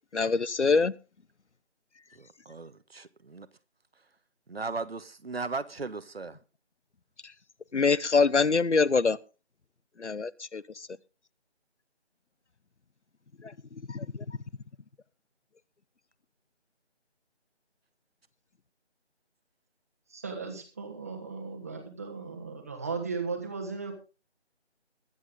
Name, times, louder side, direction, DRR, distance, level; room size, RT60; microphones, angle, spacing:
voice 1, 0.1-0.9 7.7-9.2 10.0-10.6 13.4-13.5 13.9-14.4, left 4 dB, 85° left, 0.9 m, -24 dB
voice 2, 2.1-3.5 4.5-6.4, right 4 dB, 60° right, 1.2 m, -37 dB
voice 3, 20.1-23.9, right 4 dB, 15° right, 1.3 m, -36 dB
21.5 x 8.0 x 3.7 m
figure-of-eight pair, 165°, 34 cm